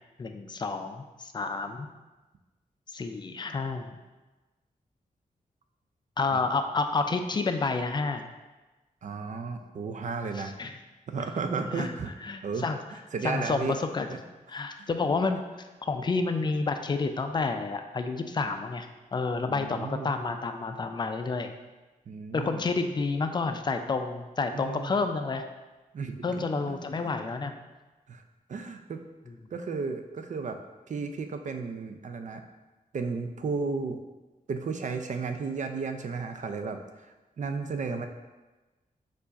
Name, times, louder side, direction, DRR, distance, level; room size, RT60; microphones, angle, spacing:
voice 1, 0.2-1.9 2.9-4.0 6.2-8.2 10.4-10.8 11.7-11.9 12.2-12.8 13.2-14.1 14.5-15.4 15.8-21.5 22.3-25.5 26.2-27.6, left 4 dB, 30° left, 7 dB, 0.4 m, -29 dB
voice 2, 9.0-10.5 11.1-12.1 12.4-13.8 14.1-14.2 14.5-14.9 19.4-20.1 22.1-22.6 24.5-25.0 25.9-27.1 28.1-28.2 28.5-29.0 29.5-30.6 30.9-32.4 32.9-34.0 34.5-37.1 37.4-38.1, right 4 dB, 55° right, 6 dB, 0.4 m, -34 dB
4.5 x 2.5 x 4.0 m, 1.2 s
cardioid pair, 75°, 15 cm